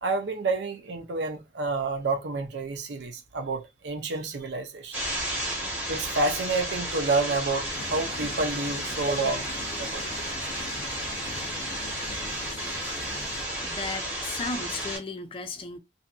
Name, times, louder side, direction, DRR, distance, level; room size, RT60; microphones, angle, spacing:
voice 1, 0.0-5.0 5.9-9.5 9.8-10.0, right 3 dB, 75° right, 0.6 m, -29 dB
sound 1, 4.9-15.0, right 1 dB, 10° right, 0.9 m, -33 dB
sound 2, 7.7-13.4, left 4 dB, 85° left, 0.5 m, -43 dB
voice 2, 13.6-15.8, left 3 dB, 30° left, 0.4 m, -35 dB
2.6 x 2.6 x 2.2 m
head